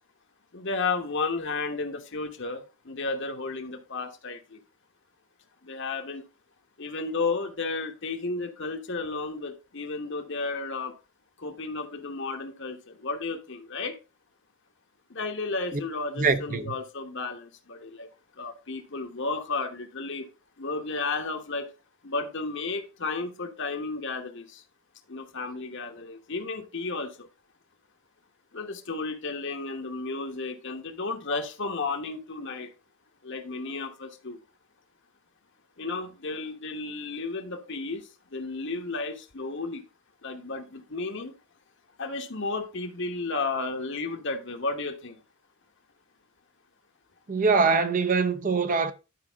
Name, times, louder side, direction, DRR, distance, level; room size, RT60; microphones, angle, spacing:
voice 1, 0.5-4.6 5.6-6.2 6.8-10.9 11.4-14.0 15.1-18.1 18.4-20.3 20.6-21.7 22.0-24.6 25.1-27.3 28.5-32.7 33.2-34.4 35.8-39.8 40.2-41.3 42.0-45.2, left 3 dB, 55° left, 1.2 m, -33 dB
voice 2, 16.2-16.7 47.3-48.9, right 4 dB, 35° right, 0.7 m, -23 dB
11.5 x 4.9 x 3.5 m
head